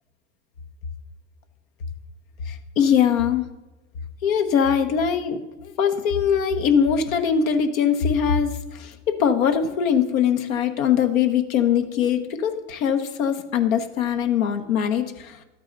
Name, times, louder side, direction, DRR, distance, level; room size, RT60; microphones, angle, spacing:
voice 1, 2.4-3.5 4.2-15.4, left 7 dB, 85° left, 7 dB, 1.1 m, -22 dB
12.0 x 8.7 x 3.9 m, 1.1 s
hypercardioid pair, 90°, 40 cm